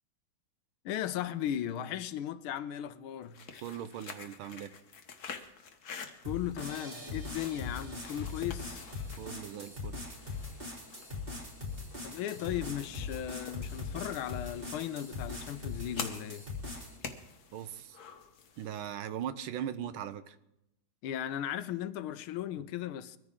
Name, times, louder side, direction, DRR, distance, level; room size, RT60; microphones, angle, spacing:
voice 1, 0.8-3.4 6.2-8.8 12.0-16.5 21.0-23.2, left 11 dB, 90° left, 1.6 m, -36 dB
sound 1, 3.2-18.8, left 6 dB, 55° left, 1.5 m, -48 dB
voice 2, 3.6-4.7 9.2-10.2 17.5-18.0 18.6-20.4, right 9 dB, 85° right, 1.6 m, -39 dB
sound 2, 6.2-17.0, left 3 dB, 25° right, 3.6 m, -41 dB
22.5 x 14.0 x 3.7 m
omnidirectional pair, 2.2 m